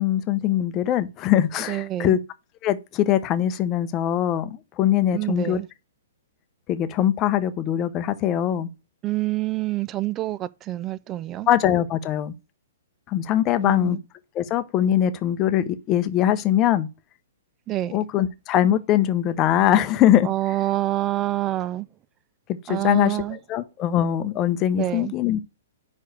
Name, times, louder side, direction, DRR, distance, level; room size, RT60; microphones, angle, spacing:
voice 1, 0.0-2.2 2.6-5.6 6.7-8.7 11.5-12.3 13.1-14.0 14.4-16.9 17.9-20.3 22.7-23.2 23.5-25.4, left 11 dB, 25° left, 0.7 m, -22 dB
voice 2, 1.7-2.2 5.1-5.7 9.0-11.5 13.6-14.0 17.7-18.0 20.2-21.9 22.7-23.4 24.8-25.1, right 15 dB, 25° right, 0.3 m, -27 dB
5.3 x 4.8 x 6.3 m
hypercardioid pair, 145°, 0 cm